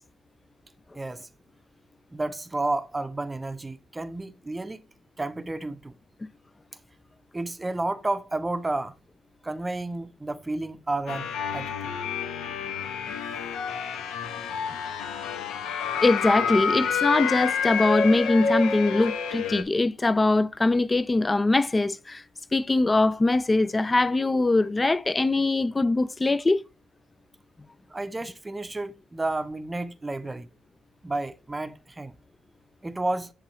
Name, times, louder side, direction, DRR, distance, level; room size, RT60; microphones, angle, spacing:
voice 1, 0.9-1.3 2.1-4.8 5.2-5.9 7.3-8.9 9.4-11.3 11.5-11.9 27.9-30.5 31.0-32.1 32.8-33.3, right 2 dB, 15° right, 0.6 m, -31 dB
sound 1, 11.1-19.6, left 6 dB, 85° left, 1.0 m, -28 dB
voice 2, 16.0-22.2 22.5-26.6, left 2 dB, 20° left, 0.3 m, -22 dB
10.0 x 3.7 x 3.1 m
cardioid pair, 90°, 0 cm